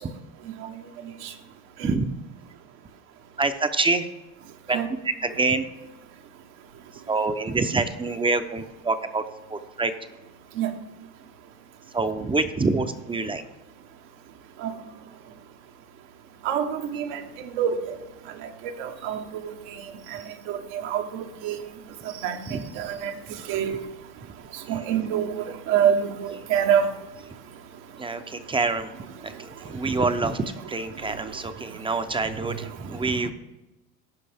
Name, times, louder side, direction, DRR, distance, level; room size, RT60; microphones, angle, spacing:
voice 1, 3.4-4.1 4.7-5.6 6.9-9.2 9.5-9.9 11.9-13.4 22.5-22.6 23.7-23.8 24.7-24.9 28.0-33.3, right 3 dB, 15° right, 0.5 m, -26 dB
voice 2, 16.4-17.2 17.6-17.8 18.8-19.5 20.5-20.6 20.8-21.6 22.2-22.4 22.8-23.1 23.5-23.8 24.7-26.9, right 9 dB, 75° right, 1.1 m, -25 dB
15.5 x 5.3 x 3.4 m
supercardioid pair, 105°, 40 cm